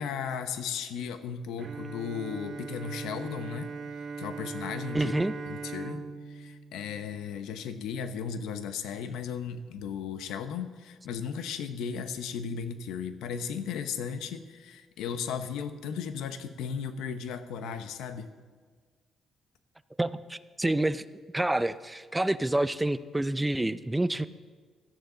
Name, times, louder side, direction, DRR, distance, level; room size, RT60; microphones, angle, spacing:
voice 1, 0.0-5.1 5.4-18.3, left 7 dB, 90° left, 10 dB, 0.9 m, -36 dB
Bowed string instrument, 1.6-7.8, right 4 dB, 50° right, 0.9 m, -40 dB
voice 2, 4.9-5.3 20.0-21.0 21.3-24.3, right 1 dB, 10° right, 14 dB, 0.5 m, -28 dB
17.0 x 13.0 x 3.9 m, 1.5 s
cardioid pair, 90°, 0 cm